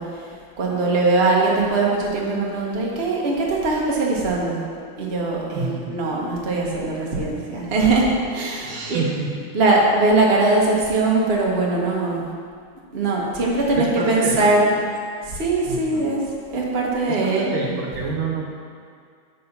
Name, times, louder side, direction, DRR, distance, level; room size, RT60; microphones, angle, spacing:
voice 1, 0.0-4.6 5.0-9.0 9.5-12.2 12.9-14.7 15.2-16.2 16.5-17.7, right 2 dB, 35° right, -3 dB, 1.1 m, -21 dB
voice 2, 5.5-6.0 8.6-9.3 13.7-14.8 15.6-16.1 17.1-18.5, right 4 dB, 75° right, -1 dB, 1.7 m, -28 dB
9.5 x 4.0 x 5.8 m, 2.2 s
omnidirectional pair, 2.2 m